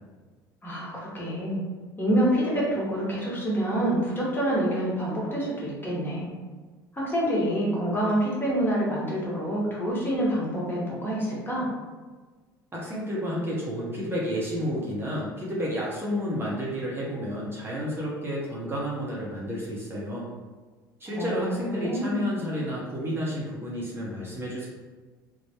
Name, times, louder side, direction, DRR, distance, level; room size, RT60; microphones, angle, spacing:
voice 1, 0.6-1.6 2.0-6.3 6.9-11.7 21.1-22.3, right 1 dB, 20° left, -6 dB, 1.3 m, -27 dB
voice 2, 12.7-20.3 21.0-24.7, equal, 20° right, -6 dB, 0.8 m, -31 dB
3.1 x 2.2 x 2.9 m, 1.4 s
hypercardioid pair, 65°, 11 cm